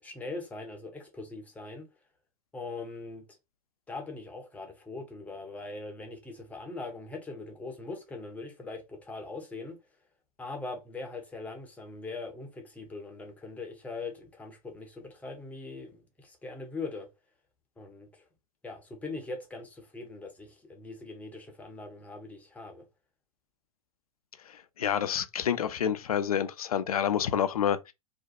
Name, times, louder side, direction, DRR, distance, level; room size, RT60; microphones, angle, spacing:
voice 1, 0.0-1.9 2.5-3.2 3.9-9.8 10.4-17.1 17.8-18.3 18.6-22.8, left 3 dB, 5° left, 0.5 m, -41 dB
voice 2, 24.5-27.9, left 9 dB, 65° left, 0.4 m, -28 dB
2.4 x 2.1 x 2.6 m
figure-of-eight pair, 100°, 20 cm